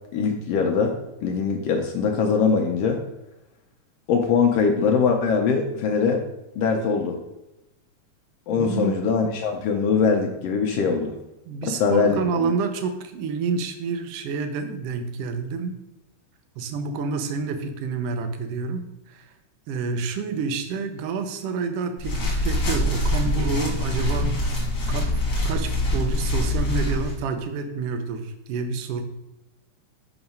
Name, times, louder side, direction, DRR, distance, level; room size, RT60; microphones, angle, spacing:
voice 1, 0.1-1.0 1.2-3.0 4.1-6.2 6.6-7.2 8.5-11.1 11.6-12.5, left 5 dB, 80° left, 2 dB, 1.4 m, -22 dB
voice 2, 8.5-9.0 11.5-15.8 16.6-19.2 19.7-24.5 24.9-29.0, right 5 dB, 75° right, 7 dB, 1.4 m, -28 dB
sound 1, 22.0-27.2, left 1 dB, 45° left, 2.2 m, -24 dB
7.0 x 3.0 x 5.3 m, 0.93 s
omnidirectional pair, 3.4 m